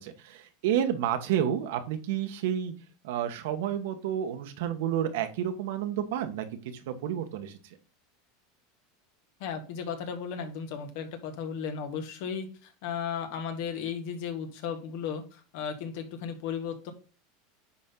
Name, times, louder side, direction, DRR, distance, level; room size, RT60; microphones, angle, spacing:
voice 1, 0.0-2.7 3.0-7.6, right 10 dB, 75° right, 7 dB, 1.3 m, -30 dB
voice 2, 9.4-16.9, left 7 dB, 65° left, 6 dB, 1.8 m, -35 dB
10.0 x 4.3 x 3.9 m, 0.35 s
supercardioid pair, 135°, 0 cm